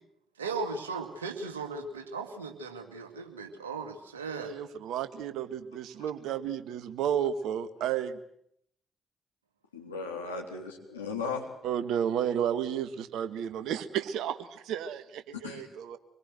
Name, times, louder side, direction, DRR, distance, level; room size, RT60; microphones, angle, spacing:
voice 1, 0.4-4.5, right 4 dB, 90° right, 5 dB, 2.3 m, -37 dB
voice 2, 4.4-8.2 11.6-16.0, right 9 dB, 70° right, 11 dB, 1.7 m, -32 dB
voice 3, 9.7-11.4 15.3-15.7, left 4 dB, 90° left, 1 dB, 3.4 m, -36 dB
25.5 x 21.5 x 7.9 m, 0.71 s
hypercardioid pair, 45°, 0 cm